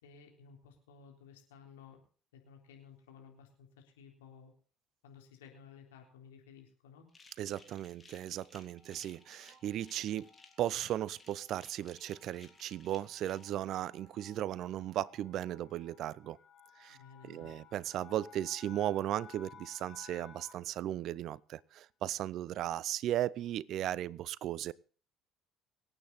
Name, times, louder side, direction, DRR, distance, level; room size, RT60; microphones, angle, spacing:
voice 1, 0.0-2.0 2.3-4.5 5.0-7.1 16.9-17.5, left 6 dB, 80° left, 3.7 m, -56 dB
sound 1, 7.1-13.4, left 4 dB, 25° left, 3.6 m, -59 dB
voice 2, 7.4-10.3 10.6-16.4 16.8-17.0 17.2-24.7, right 12 dB, 60° right, 0.6 m, -36 dB
sound 2, 8.7-20.8, left 7 dB, 45° left, 3.2 m, -59 dB
24.5 x 9.0 x 4.1 m
hypercardioid pair, 60°, 0 cm